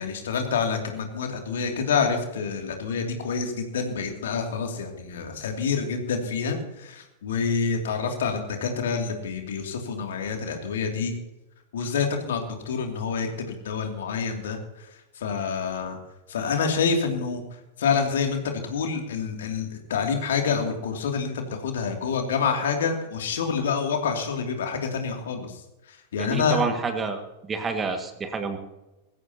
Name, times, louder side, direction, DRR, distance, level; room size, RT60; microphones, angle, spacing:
voice 1, 0.0-11.1 11.7-14.9 15.1-16.0 16.3-17.4 17.8-25.6 25.9-26.6, left 5 dB, 60° left, 3 dB, 2.7 m, -27 dB
voice 2, 26.2-27.2 27.5-28.6, right 4 dB, 20° right, 6 dB, 2.0 m, -28 dB
21.0 x 15.5 x 2.9 m, 0.98 s
figure-of-eight pair, 90°, 0 cm